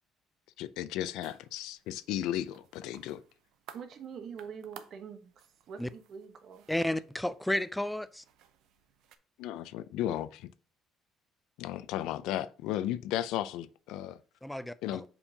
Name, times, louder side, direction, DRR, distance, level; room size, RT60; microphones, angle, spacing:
voice 1, 0.6-3.2 9.4-10.5 11.6-14.2 14.8-15.0, left 12 dB, 85° left, 0.4 m, -35 dB
sound 1, 1.0-9.2, right 10 dB, 80° right, 0.7 m, -57 dB
voice 2, 3.7-6.7, right 7 dB, 50° right, 1.0 m, -45 dB
voice 3, 6.7-8.2 14.4-15.0, left 1 dB, 5° left, 0.3 m, -32 dB
7.0 x 5.4 x 2.8 m
cardioid pair, 140°, 0 cm